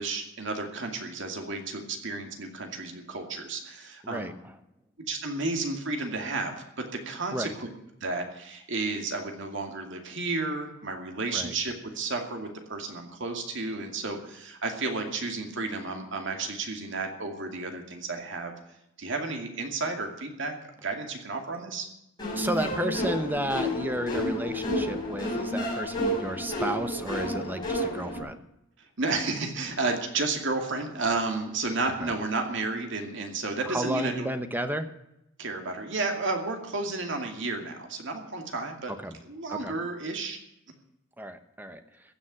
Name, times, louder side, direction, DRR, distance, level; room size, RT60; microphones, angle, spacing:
voice 1, 0.0-4.3 5.1-7.7 8.0-18.5 19.0-20.6 20.8-21.9 29.0-34.3 35.4-38.9 39.2-40.4, right 3 dB, 60° right, 3 dB, 2.4 m, -32 dB
sound 1, 22.2-28.2, equal, 20° left, 6.1 m, -30 dB
voice 2, 22.3-28.4 32.0-32.1 33.7-34.9 38.9-39.2 39.5-39.7 41.2-41.8, right 1 dB, 10° right, 9 dB, 1.0 m, -32 dB
15.5 x 7.3 x 10.0 m, 0.83 s
head